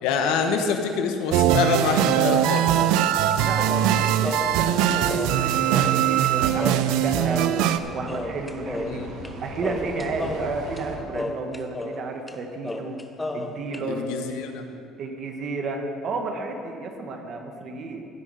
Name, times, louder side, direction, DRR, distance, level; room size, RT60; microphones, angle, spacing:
voice 1, 0.0-2.8 8.8-9.1 13.9-14.6, left 5 dB, 85° left, 5 dB, 1.1 m, -25 dB
sound 1, 1.3-7.8, right 11 dB, 85° right, 0.5 m, -21 dB
sound 2, 2.2-6.3 6.6-7.8 8.1-9.3 9.6-12.0 12.3-12.4 12.6-13.8, left 2 dB, 10° left, 0.7 m, -33 dB
voice 2, 3.4-7.6 7.9-9.0 9.4-13.0 13.3-14.1 15.0-18.1, right 3 dB, 45° right, 3 dB, 1.2 m, -32 dB
sound 3, 3.6-11.0, right 2 dB, 65° right, 1.9 m, -42 dB
15.0 x 6.3 x 5.6 m, 2.4 s
cardioid pair, 140°, 0 cm